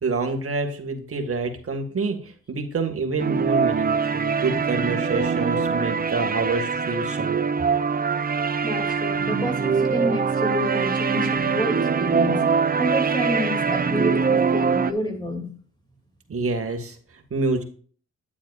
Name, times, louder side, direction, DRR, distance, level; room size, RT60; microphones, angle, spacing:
voice 1, 0.0-7.4 16.3-17.0 17.3-17.6, right 3 dB, 45° right, 2.2 m, -27 dB
sound 1, 3.2-14.9, right 5 dB, 30° right, 0.6 m, -23 dB
voice 2, 8.6-12.4 12.8-15.6, left 1 dB, 15° left, 2.8 m, -29 dB
10.0 x 8.3 x 2.5 m
cardioid pair, 70°, 31 cm